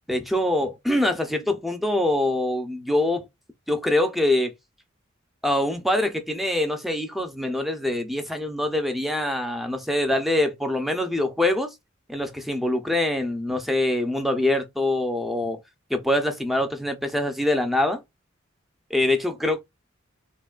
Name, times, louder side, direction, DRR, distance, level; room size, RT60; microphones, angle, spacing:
voice 1, 0.1-3.3 3.7-4.5 5.4-11.7 12.1-15.6 15.9-18.0 18.9-19.6, left 1 dB, ahead, 0.5 m, -24 dB
3.1 x 2.2 x 2.3 m
head